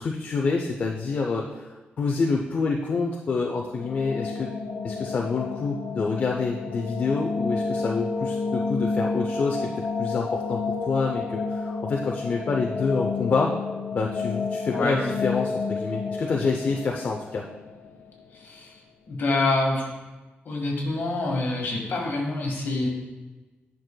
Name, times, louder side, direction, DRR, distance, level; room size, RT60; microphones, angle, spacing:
voice 1, 0.0-4.5 4.8-9.7 10.0-10.6 10.9-13.5 13.9-17.4, left 4 dB, 45° left, 0 dB, 0.5 m, -27 dB
sound 1, 3.6-18.4, left 4 dB, 80° left, 0.9 m, -30 dB
voice 2, 18.3-18.8 19.1-19.9 20.4-22.9, left 2 dB, 60° left, -1 dB, 1.6 m, -26 dB
10.5 x 6.1 x 2.3 m, 1.2 s
wide cardioid pair, 170°, 4 cm